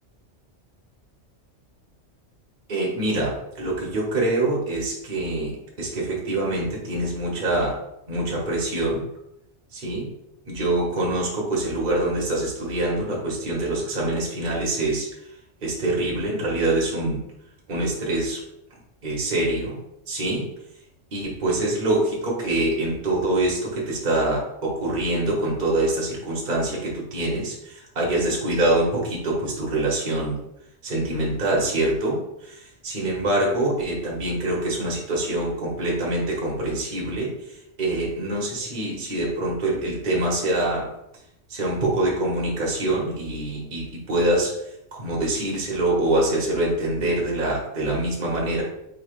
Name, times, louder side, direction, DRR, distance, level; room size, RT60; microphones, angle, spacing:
voice 1, 2.7-7.8 8.1-9.1 9.7-10.1 10.5-15.1 15.6-17.2 17.7-18.4 19.0-19.8 20.1-20.5 21.1-30.4 30.8-40.9 41.5-48.6, right 1 dB, 45° right, -3 dB, 1.1 m, -25 dB
4.5 x 3.2 x 2.4 m, 0.81 s
omnidirectional pair, 1.2 m